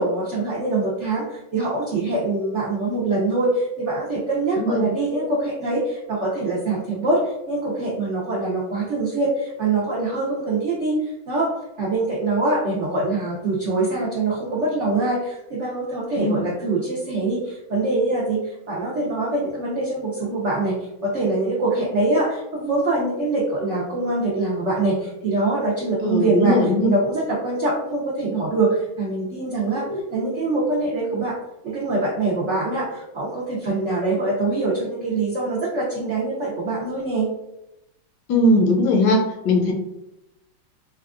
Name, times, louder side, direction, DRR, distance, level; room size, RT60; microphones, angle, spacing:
voice 1, 0.0-11.5 11.8-18.4 18.7-26.6 26.8-31.3 31.6-37.3, right 2 dB, 90° right, -6 dB, 0.6 m, -24 dB
voice 2, 4.6-4.9 16.2-16.4 26.0-26.9 29.8-30.0 38.3-39.7, left 1 dB, 70° left, 1 dB, 1.0 m, -19 dB
4.3 x 2.3 x 2.4 m, 0.88 s
omnidirectional pair, 2.2 m